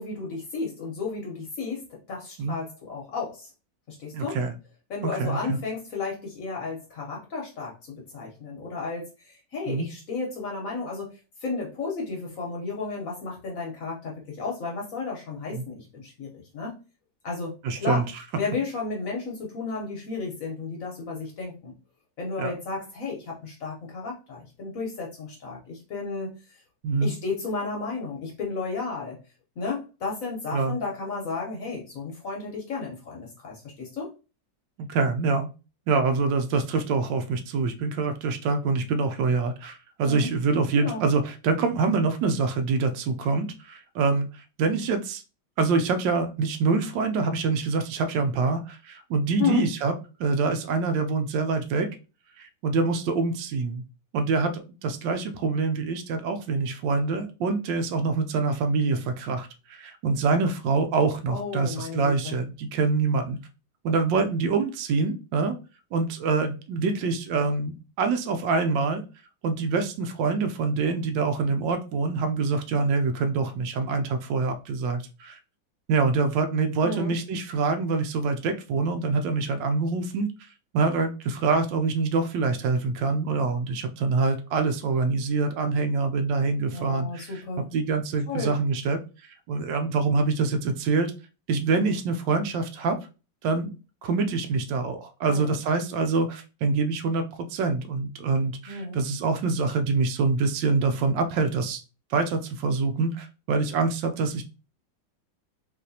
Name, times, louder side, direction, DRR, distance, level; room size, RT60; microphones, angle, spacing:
voice 1, 0.0-3.5 3.9-4.4 4.9-11.1 11.4-16.8 17.2-18.0 18.3-21.7 22.2-26.6 27.0-29.2 29.6-34.1 40.0-40.3 40.7-41.0 49.4-49.7 61.3-62.4 76.8-77.1 86.7-87.7 88.3-88.5 95.2-95.6 98.7-99.0, left 4 dB, 55° left, -2 dB, 1.1 m, -33 dB
voice 2, 4.1-4.5 5.0-5.6 9.7-9.9 15.5-15.6 17.6-18.0 22.4-22.5 26.8-27.1 30.5-30.8 34.8-35.5 35.9-45.2 45.6-49.9 50.2-52.0 52.4-53.8 54.1-63.4 63.8-65.6 65.9-69.0 69.4-75.4 75.9-80.3 80.7-87.4 87.7-89.0 89.5-91.1 91.5-93.0 93.4-93.7 94.0-101.8 102.1-104.4, right 4 dB, 75° right, 7 dB, 1.2 m, -25 dB
4.1 x 2.5 x 2.7 m, 0.32 s
omnidirectional pair, 2.1 m